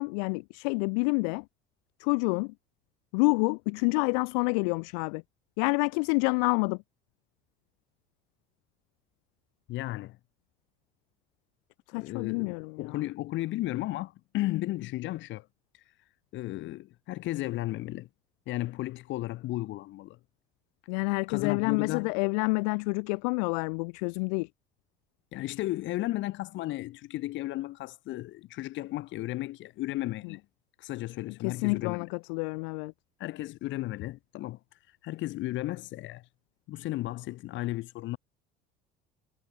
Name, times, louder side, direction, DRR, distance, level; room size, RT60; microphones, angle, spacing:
voice 1, 0.0-1.5 2.0-2.5 3.1-5.2 5.6-6.8 11.9-13.0 20.9-24.5 30.2-30.4 31.4-32.9, left 36 dB, 80° left, 2.4 m, -28 dB
voice 2, 9.7-10.2 11.9-15.5 15.7-15.8 16.3-18.1 18.5-20.2 21.3-22.1 25.3-30.4 30.8-32.1 33.2-34.6 35.0-36.3 36.7-38.2, left 17 dB, 65° left, 1.8 m, -34 dB
supercardioid pair, 85°, 21 cm